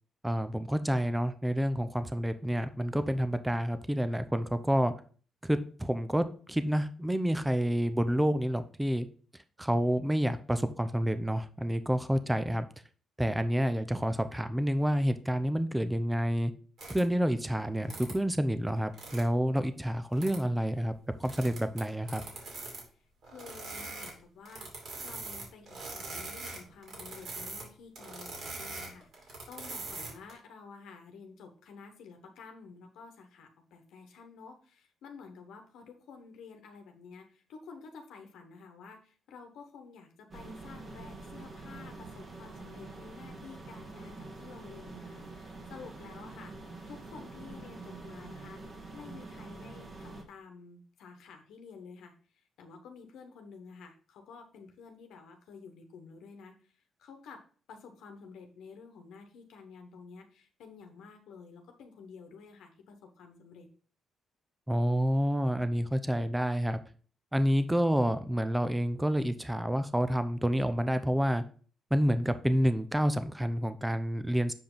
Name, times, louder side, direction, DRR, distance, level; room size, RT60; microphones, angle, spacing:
voice 1, 0.2-4.9 5.4-9.1 9.6-12.7 13.2-16.5 16.9-20.9 21.2-22.2 64.7-66.8 67.3-71.4 71.9-74.5, equal, 10° right, 11 dB, 0.6 m, -28 dB
sound 1, 16.8-17.0 17.8-18.1 18.8-19.2 20.1-20.4 21.2-22.8 23.2-24.1 24.4-27.6 27.9-30.3, right 3 dB, 60° right, 3.1 m, -42 dB
voice 2, 23.2-24.7 25.0-46.5 46.9-48.6 48.9-52.2 52.6-56.7 57.0-63.7, left 5 dB, 85° left, 4 dB, 1.1 m, -51 dB
sound 2, 40.3-50.2, right 3 dB, 35° right, 1.5 m, -46 dB
7.1 x 5.0 x 3.8 m, 0.41 s
cardioid pair, 110°, 0 cm